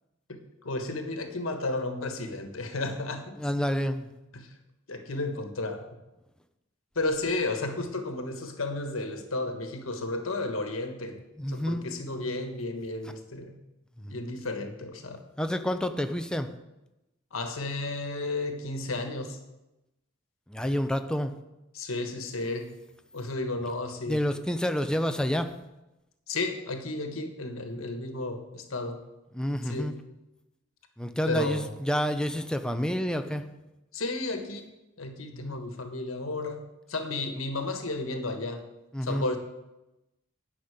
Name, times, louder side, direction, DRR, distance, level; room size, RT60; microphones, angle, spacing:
voice 1, 0.3-3.4 4.3-4.5 4.9-5.9 6.9-11.2 11.5-13.6 14.1-15.2 17.3-19.4 21.7-22.7 23.1-24.2 26.3-29.0 29.7-29.9 31.3-31.6 33.9-36.6 36.9-38.6 39.0-39.4, left 2 dB, 85° left, 6 dB, 1.3 m, -33 dB
voice 2, 3.4-4.1 11.4-12.2 14.0-14.2 15.4-16.5 20.5-21.3 24.0-25.5 29.3-30.0 31.0-33.5 35.3-35.6 38.9-39.3, equal, 5° left, 7 dB, 0.6 m, -29 dB
9.9 x 5.8 x 8.2 m, 0.96 s
head